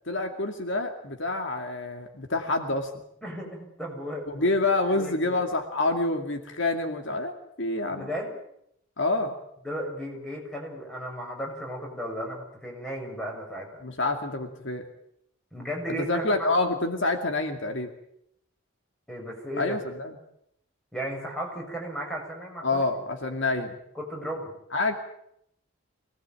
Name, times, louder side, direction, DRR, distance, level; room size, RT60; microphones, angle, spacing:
voice 1, 0.1-2.9 4.3-7.3 7.6-8.1 9.0-9.4 13.8-14.8 16.0-17.9 19.6-20.1 22.6-23.8 24.7-24.9, left 2 dB, 60° left, 4 dB, 2.4 m, -27 dB
voice 2, 3.2-4.5 4.9-5.4 7.9-8.4 9.6-13.8 15.5-16.5 19.1-19.8 20.9-22.8 23.9-24.5, equal, 5° left, -1 dB, 6.7 m, -35 dB
25.5 x 18.5 x 9.1 m, 0.75 s
head